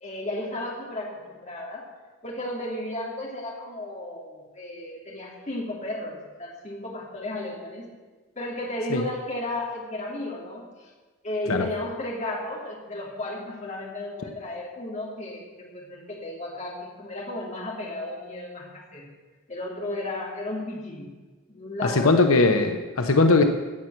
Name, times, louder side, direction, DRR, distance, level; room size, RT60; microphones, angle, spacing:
voice 1, 0.0-1.9 2.2-7.9 8.3-10.9 11.2-19.1 19.5-21.1 21.5-22.2, left 1 dB, 35° left, -2 dB, 2.8 m, -34 dB
voice 2, 21.8-23.4, left 3 dB, 85° left, 6 dB, 0.9 m, -20 dB
16.5 x 6.0 x 7.8 m, 1.3 s
head